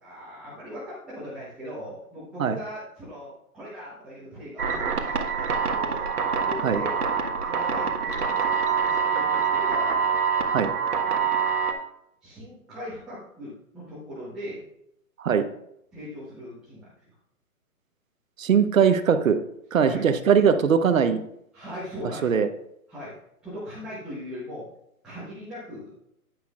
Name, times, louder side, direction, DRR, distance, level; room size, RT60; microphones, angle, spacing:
voice 1, 0.0-6.1 6.4-10.0 10.9-11.5 12.2-14.6 15.9-17.2 19.8-20.1 21.5-22.4 22.9-23.1 23.4-24.7 25.0-25.9, equal, ahead, -11 dB, 1.0 m, -39 dB
sound 1, 4.6-11.7, right 6 dB, 75° right, 1.4 m, -25 dB
voice 2, 18.4-19.4 19.7-21.2 22.2-22.5, right 7 dB, 60° right, 9 dB, 1.0 m, -20 dB
10.5 x 9.5 x 2.4 m, 0.76 s
hypercardioid pair, 155°, 45 cm